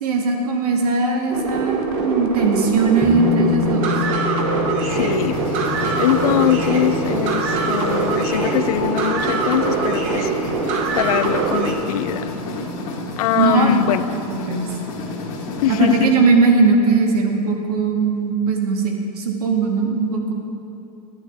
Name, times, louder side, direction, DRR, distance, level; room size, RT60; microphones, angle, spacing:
voice 1, 0.0-3.9 13.3-14.7 15.7-20.3, right 4 dB, 85° right, 1 dB, 1.5 m, -19 dB
sound 1, 1.3-11.7, right 4 dB, 50° right, 1.2 m, -23 dB
sound 2, 3.0-12.1 12.4-12.5, left 7 dB, 10° left, 0.7 m, -29 dB
voice 2, 4.7-5.4 5.9-10.3 10.7-12.3 13.2-14.0 15.6-16.1, left 12 dB, 75° left, 14 dB, 0.4 m, -22 dB
sound 3, 4.9-16.0, left 3 dB, 55° left, 1.7 m, -31 dB
11.0 x 8.9 x 3.5 m, 2.7 s
supercardioid pair, 140°, 19 cm